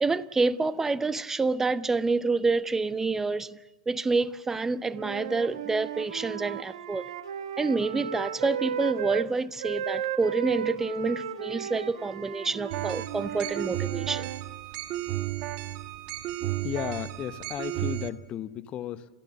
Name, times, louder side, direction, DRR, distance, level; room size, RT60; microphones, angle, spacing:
voice 1, 0.0-3.6 3.9-7.1 7.6-14.3, right 3 dB, 10° right, 0.6 m, -28 dB
Wind instrument woodwind instrument, 4.9-9.3 9.6-14.4, right 8 dB, 75° right, 1.4 m, -35 dB
sound 1, 12.7-18.1, right 14 dB, 45° right, 1.4 m, -33 dB
voice 2, 16.6-19.1, left 11 dB, 35° left, 0.8 m, -34 dB
29.0 x 13.5 x 7.1 m
hypercardioid pair, 110°, 3 cm